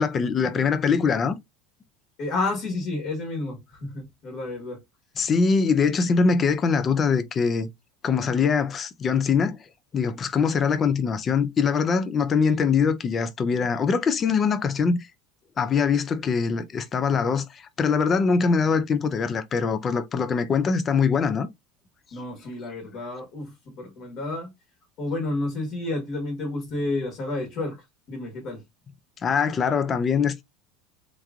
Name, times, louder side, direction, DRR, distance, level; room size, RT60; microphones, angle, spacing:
voice 1, 0.0-1.4 5.2-7.7 8.0-9.6 9.9-15.1 15.6-21.5 29.2-30.4, left 5 dB, 25° left, 0.5 m, -23 dB
voice 2, 2.2-4.8 22.1-24.5 25.0-28.6, left 2 dB, 45° left, 1.3 m, -30 dB
3.6 x 3.0 x 2.4 m
supercardioid pair, 140°, 0 cm